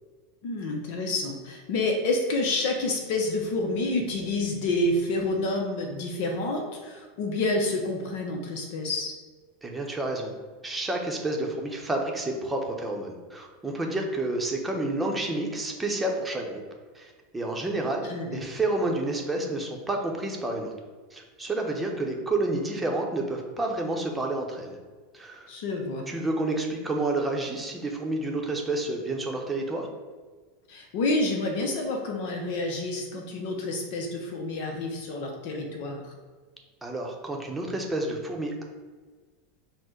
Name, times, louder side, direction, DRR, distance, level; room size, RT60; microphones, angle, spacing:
voice 1, 0.4-9.1 18.0-18.5 25.5-26.1 30.7-36.1, left 2 dB, 60° left, 1 dB, 0.6 m, -28 dB
voice 2, 9.6-10.3 10.6-16.6 16.9-20.7 21.1-24.8 25.1-25.5 26.1-29.9 36.8-38.6, right 2 dB, 15° right, 1 dB, 0.8 m, -29 dB
4.3 x 2.1 x 4.4 m, 1.4 s
hypercardioid pair, 85°, 0 cm